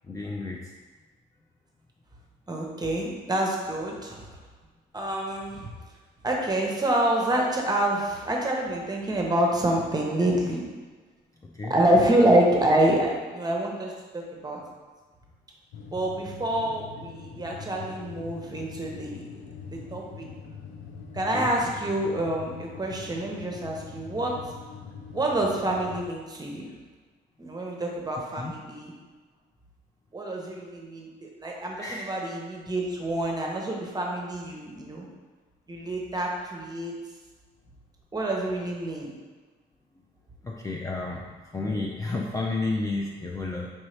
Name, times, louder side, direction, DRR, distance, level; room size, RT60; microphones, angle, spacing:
voice 1, 0.1-0.7 11.5-11.7 21.3-21.5 28.4-28.5 31.8-32.0 40.4-41.2 41.5-43.7, left 3 dB, 15° left, -2 dB, 0.4 m, -31 dB
voice 2, 2.5-4.4 4.9-5.7 6.2-10.6 11.6-14.6 15.9-19.2 19.7-20.3 21.1-24.4 25.1-26.7 27.4-28.9 30.1-35.1 35.7-37.0 38.1-39.1, right 1 dB, 20° right, -1 dB, 0.8 m, -27 dB
sound 1, 15.7-26.1, left 6 dB, 75° left, 0.5 m, -43 dB
4.5 x 2.7 x 3.2 m, 1.4 s
cardioid pair, 90°, 20 cm